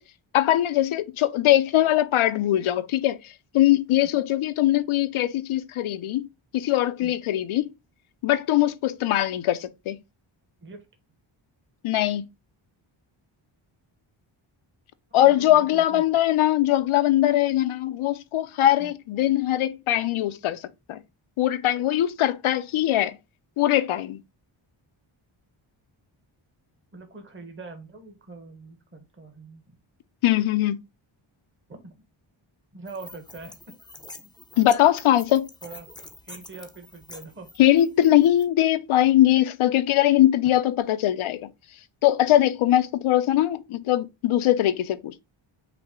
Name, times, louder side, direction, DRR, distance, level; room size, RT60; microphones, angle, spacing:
voice 1, 0.3-3.2 3.5-6.3 6.5-7.7 8.2-10.0 11.8-12.2 15.1-20.6 20.9-21.0 21.4-23.2 23.6-24.2 30.2-30.8 34.6-35.5 37.6-41.4 42.0-45.2, left 13 dB, 75° left, 0.6 m, -21 dB
voice 2, 15.2-16.0 18.8-18.9 26.9-29.7 31.7-32.0 32.7-33.6 35.6-35.9 36.2-37.5, right 3 dB, 25° right, 1.0 m, -43 dB
sound 1, 32.9-38.4, left 2 dB, 10° left, 0.5 m, -46 dB
5.8 x 2.1 x 3.6 m
wide cardioid pair, 105°, 49 cm